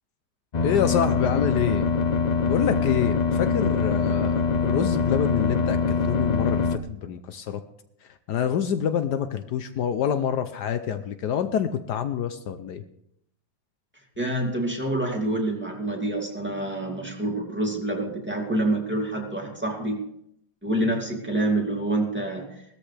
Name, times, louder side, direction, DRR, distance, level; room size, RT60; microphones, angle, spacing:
sound 1, 0.5-6.8, left 5 dB, 55° left, 0.4 m, -23 dB
voice 1, 0.6-1.8 2.5-7.6 8.3-12.8, left 9 dB, 75° left, 10 dB, 1.2 m, -27 dB
voice 2, 14.2-20.1 20.6-22.8, right 1 dB, 5° right, 0 dB, 2.3 m, -27 dB
18.0 x 13.5 x 3.3 m, 0.74 s
omnidirectional pair, 1.9 m